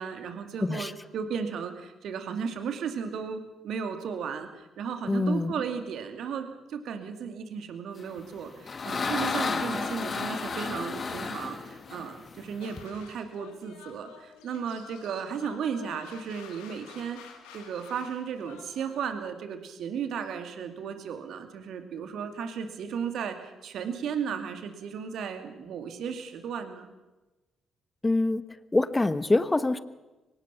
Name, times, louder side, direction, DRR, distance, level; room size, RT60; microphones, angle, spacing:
voice 1, 0.0-17.2 17.5-26.9, right 7 dB, 65° right, 7 dB, 2.4 m, -35 dB
voice 2, 0.6-0.9 5.1-5.5 28.0-28.4 28.7-29.8, left 2 dB, 20° left, 14 dB, 1.3 m, -25 dB
sound 1, 8.2-12.9, left 4 dB, 45° left, 2.2 m, -32 dB
sound 2, 12.6-19.1, left 7 dB, 75° left, 2.4 m, -50 dB
24.5 x 18.5 x 5.9 m, 1.1 s
hypercardioid pair, 40°, 0 cm